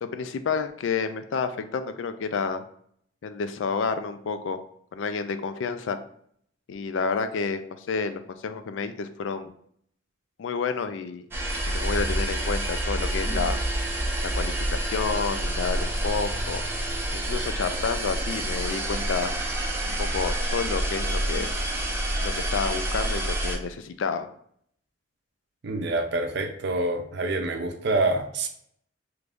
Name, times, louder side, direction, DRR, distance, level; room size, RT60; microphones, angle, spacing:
voice 1, 0.0-2.6 3.2-4.6 4.9-6.0 6.7-9.5 10.4-11.3 11.7-13.6 14.3-16.6 17.1-19.3 19.8-21.5 22.2-24.3, left 5 dB, 85° left, 10 dB, 0.4 m, -30 dB
sound 1, 11.3-23.6, right 1 dB, 10° right, 0.5 m, -28 dB
voice 2, 25.6-28.5, right 2 dB, 65° right, 5 dB, 0.5 m, -26 dB
3.1 x 2.5 x 3.4 m, 0.66 s
head